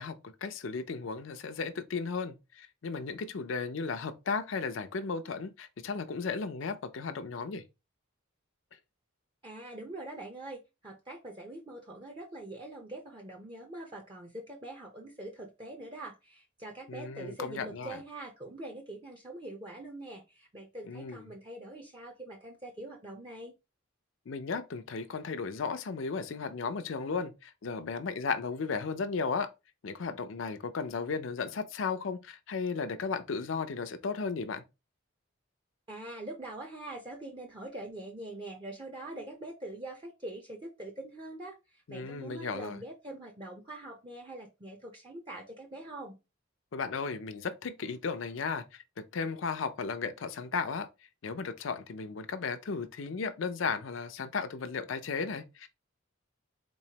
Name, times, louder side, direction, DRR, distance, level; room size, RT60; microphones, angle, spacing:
voice 1, 0.0-7.6 16.9-18.0 20.9-21.3 24.3-29.5 29.8-34.6 41.9-42.8 46.7-50.9 51.2-55.7, left 5 dB, 75° left, 0.5 m, -35 dB
voice 2, 9.4-23.5 35.9-46.2, right 1 dB, 25° right, 0.6 m, -44 dB
4.0 x 3.1 x 2.8 m
head